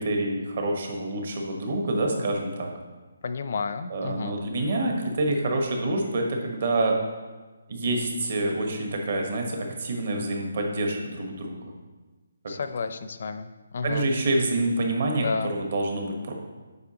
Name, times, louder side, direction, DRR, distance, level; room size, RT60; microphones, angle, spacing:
voice 1, 0.0-2.7 3.9-6.9 7.7-11.7 13.8-16.3, right 2 dB, 50° right, 1 dB, 1.1 m, -27 dB
voice 2, 3.2-4.4 12.5-14.1 15.2-15.5, left 4 dB, 50° left, 10 dB, 0.4 m, -31 dB
8.0 x 5.5 x 2.9 m, 1.3 s
hypercardioid pair, 170°, 0 cm